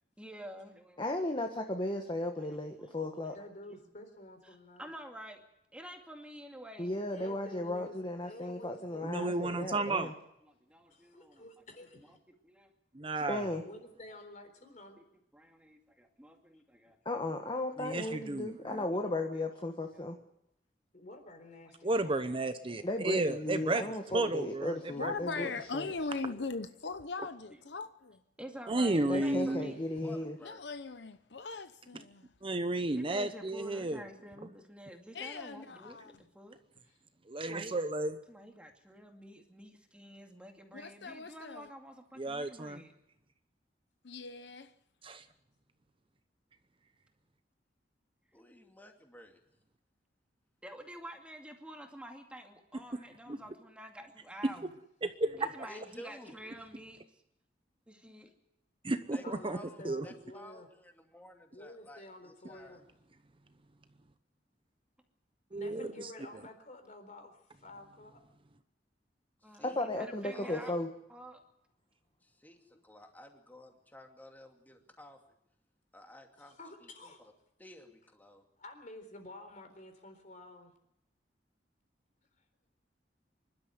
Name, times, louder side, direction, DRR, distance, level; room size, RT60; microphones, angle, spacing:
voice 1, 0.2-1.1 2.3-3.4 3.7-3.8 4.4-5.4 5.7-6.9 10.4-11.4 12.0-12.7 13.3-13.5 15.0-15.1 15.3-17.0 18.9-19.4 19.9-20.1 21.7-22.4 22.7-22.9 23.8-24.4 25.8-26.5 27.5-27.6 28.4-29.8 32.9-36.6 38.3-42.9 50.6-54.7 55.4-57.0 57.9-58.3 65.5-65.8 69.4-70.7 71.1-71.4, equal, 5° right, 2.4 m, -50 dB
voice 2, 1.0-3.4 6.8-10.1 13.3-13.6 17.0-20.2 22.8-25.9 29.1-30.4 69.6-70.9, left 1 dB, 30° left, 1.4 m, -35 dB
voice 3, 3.3-4.9 7.1-8.0 8.2-9.5 10.9-12.2 13.6-15.0 16.8-17.0 20.9-22.3 29.7-29.8 59.2-60.7 61.5-62.9 65.5-68.2 76.4-77.2 78.6-80.7, left 1 dB, 45° left, 4.0 m, -50 dB
voice 4, 9.0-10.1 12.9-13.5 17.8-18.8 21.8-23.8 24.1-25.1 28.7-29.8 32.4-34.0 37.3-38.2 42.2-42.8 45.0-45.2 53.3-53.4 55.0-55.7 58.8-59.6 59.8-60.0 65.5-66.1, right 2 dB, 30° right, 0.9 m, -33 dB
voice 5, 25.0-28.2 30.4-32.3 35.1-36.1 40.7-41.7 44.0-44.7, left 4 dB, 70° left, 0.9 m, -40 dB
voice 6, 28.6-29.6 30.0-30.6 48.3-49.4 55.7-56.3 59.1-62.8 69.4-69.8 70.3-70.8 72.2-75.2 75.9-77.1 77.6-78.4, equal, 10° left, 2.6 m, -53 dB
25.5 x 12.5 x 9.5 m
head